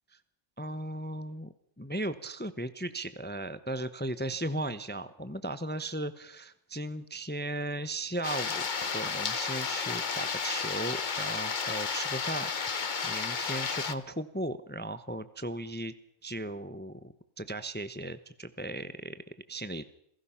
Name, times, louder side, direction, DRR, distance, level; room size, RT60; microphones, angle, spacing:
voice 1, 0.6-15.9 16.2-19.8, right 1 dB, 10° left, 13 dB, 0.6 m, -37 dB
sound 1, 8.2-13.9, left 5 dB, 40° left, 1.0 m, -32 dB
27.0 x 17.0 x 5.7 m, 0.70 s
omnidirectional pair, 1.5 m